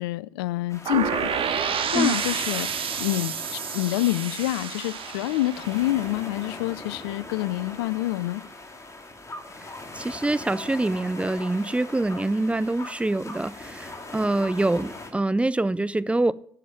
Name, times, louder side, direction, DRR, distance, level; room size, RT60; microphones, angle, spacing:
voice 1, 0.0-8.4, left 17 dB, 80° left, 0.4 m, -27 dB
Content warning, 0.7-15.1, left 2 dB, 25° left, 2.4 m, -41 dB
sound 1, 0.9-6.7, right 7 dB, 50° right, 1.2 m, -30 dB
voice 2, 9.9-16.3, right 2 dB, 10° right, 0.5 m, -25 dB
8.4 x 7.0 x 8.3 m
hypercardioid pair, 55°, 12 cm